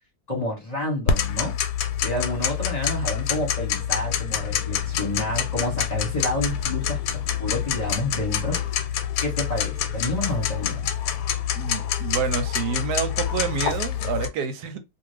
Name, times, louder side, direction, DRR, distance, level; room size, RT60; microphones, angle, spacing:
voice 1, 0.3-1.5 2.0-8.6 9.2-10.9, left 1 dB, 30° left, 0.9 m, -29 dB
Tick-tock, 1.1-14.3, left 9 dB, 85° left, 1.1 m, -26 dB
voice 2, 11.5-14.8, right 6 dB, 90° right, 1.2 m, -28 dB
2.6 x 2.4 x 3.2 m
omnidirectional pair, 1.7 m